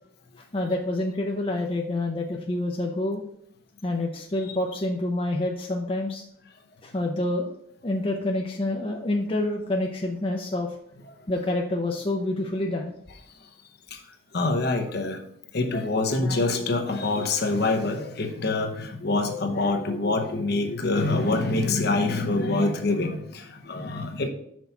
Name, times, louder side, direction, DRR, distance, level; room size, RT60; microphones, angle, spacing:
voice 1, 0.5-3.2 3.8-6.2 6.8-7.5 7.8-10.7 11.3-12.9, left 1 dB, 25° left, 0 dB, 0.6 m, -27 dB
voice 2, 14.3-15.2 15.5-24.3, left 2 dB, 50° left, 5 dB, 0.9 m, -25 dB
6.2 x 4.1 x 5.7 m, 0.70 s
head